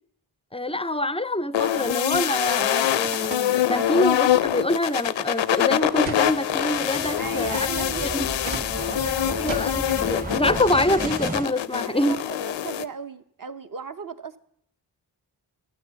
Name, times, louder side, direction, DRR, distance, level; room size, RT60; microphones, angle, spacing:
voice 1, 0.5-7.7 8.1-8.3 9.4-12.2, left 1 dB, 15° left, 0.4 m, -25 dB
sound 1, 1.5-12.8, left 11 dB, 85° left, 0.5 m, -25 dB
sound 2, 1.9-12.6, right 4 dB, 80° right, 1.4 m, -43 dB
sound 3, 5.9-11.5, right 1 dB, 20° right, 1.0 m, -34 dB
voice 2, 7.2-8.3 8.6-9.6 11.8-14.4, right 5 dB, 50° right, 0.9 m, -36 dB
13.0 x 9.1 x 6.9 m
cardioid pair, 45°, 44 cm